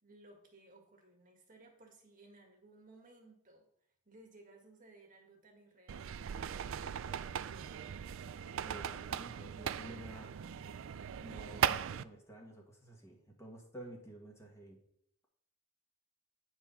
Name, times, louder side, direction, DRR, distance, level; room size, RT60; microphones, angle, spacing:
voice 1, 0.0-3.7 4.1-6.6, right 2 dB, 40° right, 2 dB, 1.8 m, -60 dB
sound 1, 5.9-12.0, right 8 dB, 65° right, 0.4 m, -38 dB
voice 2, 8.6-10.3 11.2-14.8, right 1 dB, 15° left, -1 dB, 1.6 m, -51 dB
9.3 x 4.7 x 5.5 m, 0.72 s
head